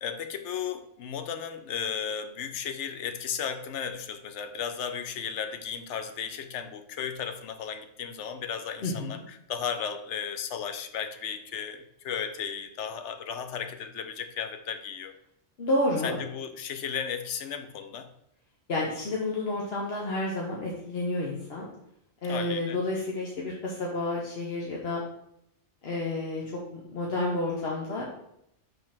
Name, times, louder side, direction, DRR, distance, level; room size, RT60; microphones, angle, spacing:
voice 1, 0.0-15.1 16.0-18.1 22.3-22.8, left 7 dB, 75° left, 8 dB, 0.9 m, -35 dB
voice 2, 8.8-9.2 15.6-16.2 18.7-21.7 22.2-25.0 25.8-28.0, left 2 dB, 60° left, -3 dB, 1.1 m, -30 dB
5.3 x 3.5 x 5.8 m, 0.77 s
omnidirectional pair, 1.2 m